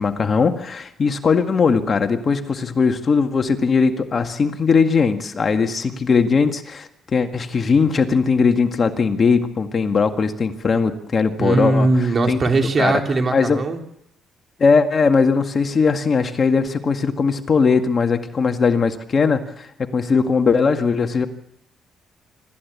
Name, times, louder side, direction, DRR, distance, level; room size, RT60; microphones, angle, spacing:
voice 1, 0.0-12.4 12.8-13.0 13.3-13.6 14.6-21.3, left 5 dB, 45° left, 6 dB, 1.9 m, -19 dB
voice 2, 11.4-13.8, right 3 dB, 40° right, 4 dB, 3.4 m, -19 dB
26.0 x 14.0 x 8.5 m, 0.77 s
cardioid pair, 90°, 0 cm